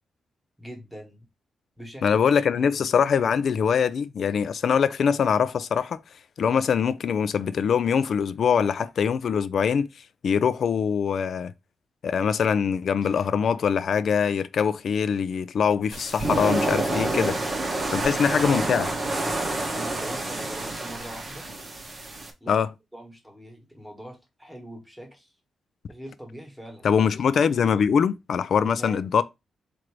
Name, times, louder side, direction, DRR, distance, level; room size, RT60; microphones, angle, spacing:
voice 1, 0.6-1.3 1.8-2.9 19.7-21.5 22.4-22.7 22.9-25.3 25.9-26.9 28.6-29.1, right 1 dB, 5° right, 1.2 m, -42 dB
voice 2, 2.0-6.0 6.4-9.9 10.2-11.5 12.0-17.4 17.9-18.9 22.5-22.7 26.8-29.2, left 7 dB, 55° left, 0.3 m, -23 dB
sound 1, 15.9-22.3, right 2 dB, 25° right, 0.8 m, -28 dB
4.5 x 2.6 x 4.6 m
wide cardioid pair, 180°, 0 cm